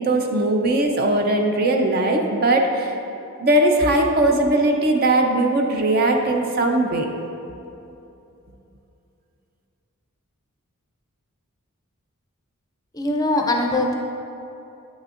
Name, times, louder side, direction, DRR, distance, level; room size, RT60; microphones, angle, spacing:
voice 1, 0.0-2.9 3.4-7.1, right 1 dB, 45° right, 2 dB, 0.6 m, -19 dB
voice 2, 12.9-13.9, left 2 dB, 15° left, 1 dB, 0.5 m, -21 dB
9.0 x 6.2 x 2.5 m, 2.8 s
head